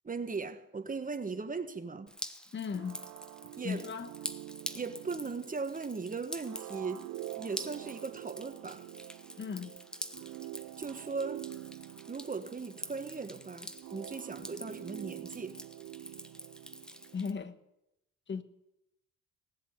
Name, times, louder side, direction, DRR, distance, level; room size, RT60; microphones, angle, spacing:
voice 1, 0.0-2.1 3.6-3.9 4.7-7.1 7.4-8.9 10.8-11.5 12.1-15.6, right 4 dB, 25° right, 1.4 m, -38 dB
Drip, 2.1-17.3, equal, 5° left, 1.1 m, -47 dB
voice 2, 2.5-3.0 3.6-4.1 9.4-9.7 14.4-14.5 17.1-17.6 18.3-18.4, left 6 dB, 40° left, 1.3 m, -36 dB
sound 1, 2.7-17.3, right 17 dB, 80° right, 0.5 m, -47 dB
18.5 x 7.6 x 9.4 m
cardioid pair, 90°, 30 cm